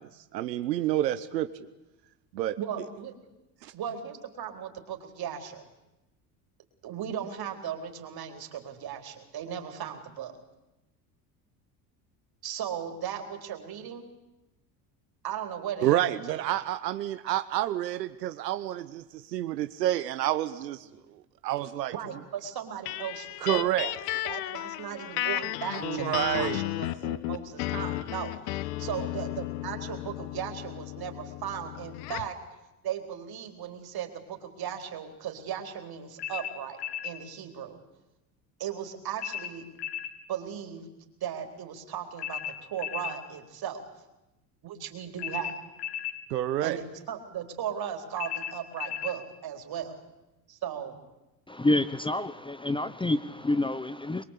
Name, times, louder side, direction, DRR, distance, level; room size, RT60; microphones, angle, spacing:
voice 1, 0.1-1.5 2.3-2.5 3.6-3.7 15.8-20.9 21.1-21.9 23.4-23.9 25.7-26.6 46.3-46.8, right 13 dB, 85° right, 11 dB, 1.0 m, -29 dB
voice 2, 2.6-3.1 3.7-5.6 6.8-10.3 12.4-14.1 15.2-16.4 21.9-23.9 24.2-28.4 28.8-32.4 32.8-37.8 38.6-39.7 40.3-40.9 41.2-43.8 44.6-45.6 46.6-50.0 50.5-51.0, right 9 dB, 50° right, 5 dB, 4.3 m, -37 dB
sound 1, 22.9-32.4, left 16 dB, 70° left, 1.1 m, -34 dB
sound 2, 36.2-37.2 39.2-40.2 42.2-43.2 45.2-46.2 48.2-49.2, left 10 dB, 55° left, 2.9 m, -35 dB
voice 3, 51.5-54.2, left 2 dB, 10° left, 13 dB, 1.0 m, -28 dB
24.0 x 22.0 x 8.5 m, 0.98 s
hypercardioid pair, 75°, 48 cm